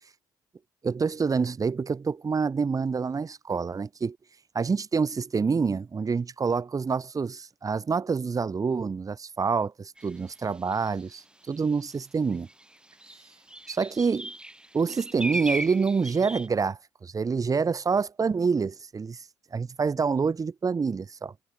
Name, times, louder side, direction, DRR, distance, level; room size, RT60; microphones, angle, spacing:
voice 1, 0.8-4.2 4.5-12.5 13.7-14.3 14.7-19.3 19.5-21.3, right 5 dB, 30° right, 2.0 m, -27 dB
sound 1, 10.0-10.1 10.7-11.0 11.9-12.0 12.3-16.5, right 1 dB, 10° right, 1.9 m, -36 dB
hypercardioid pair, 55°, 11 cm